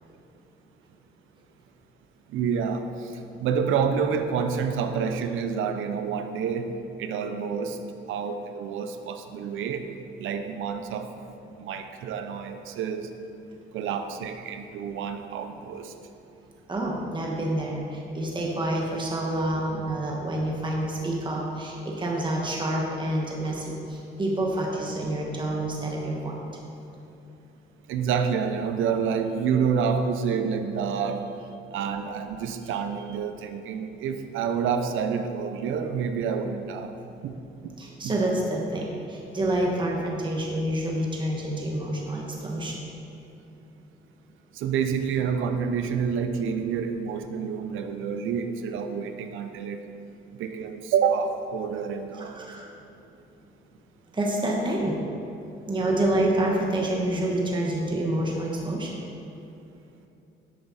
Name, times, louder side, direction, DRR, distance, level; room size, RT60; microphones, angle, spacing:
voice 1, 2.3-3.1 3.4-6.7 7.0-7.8 8.1-9.9 10.2-11.1 11.6-13.1 13.7-15.9 27.9-31.3 31.7-36.9 37.2-37.4 37.6-37.7 38.0-38.1 44.5-49.8 50.4-52.5, right 6 dB, 90° right, 8 dB, 0.7 m, -28 dB
voice 2, 16.7-26.4 37.8-42.9 52.2-52.7 54.1-55.0 55.7-59.0, right 1 dB, 25° right, -2 dB, 1.5 m, -28 dB
10.5 x 8.4 x 4.2 m, 2.7 s
cardioid pair, 90°, 20 cm